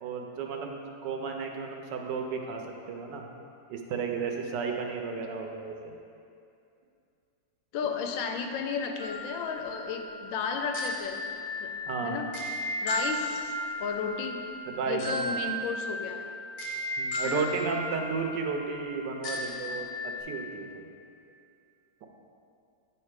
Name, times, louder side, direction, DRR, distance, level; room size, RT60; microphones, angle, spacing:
voice 1, 0.0-3.3 3.7-5.9 11.9-12.3 14.8-15.4 17.0-20.9, right 5 dB, 70° right, 3 dB, 1.2 m, -33 dB
voice 2, 7.7-11.2 11.6-11.7 12.0-12.3 12.8-14.4 14.9-16.2 17.2-17.5, left 6 dB, 85° left, 4 dB, 1.3 m, -33 dB
sound 1, 9.0-20.2, left 1 dB, 55° left, 1.1 m, -35 dB
9.3 x 3.3 x 4.7 m, 2.5 s
omnidirectional pair, 2.1 m